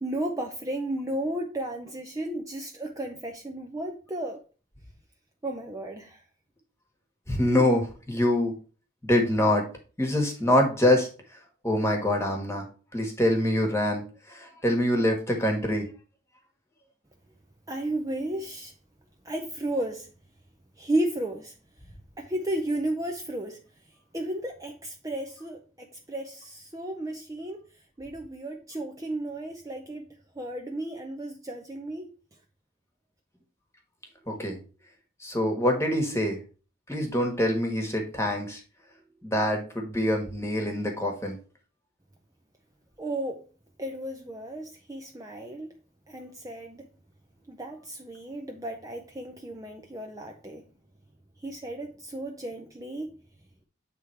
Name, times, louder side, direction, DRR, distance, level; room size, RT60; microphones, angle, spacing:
voice 1, 0.0-4.4 5.4-6.2 17.7-18.7 19.2-20.1 20.8-21.5 22.2-23.6 24.1-27.6 28.0-30.0 30.4-32.1 43.0-43.4 43.8-45.7 46.1-46.9 47.5-50.6 51.4-53.1, right 1 dB, 15° right, 0.5 m, -33 dB
voice 2, 7.3-8.5 9.0-9.6 10.0-11.1 11.6-12.6 12.9-14.0 14.3-15.8 34.3-34.6 35.2-36.4 36.9-38.6 39.2-41.4, left 1 dB, 15° left, 1.4 m, -25 dB
8.1 x 3.5 x 4.5 m
head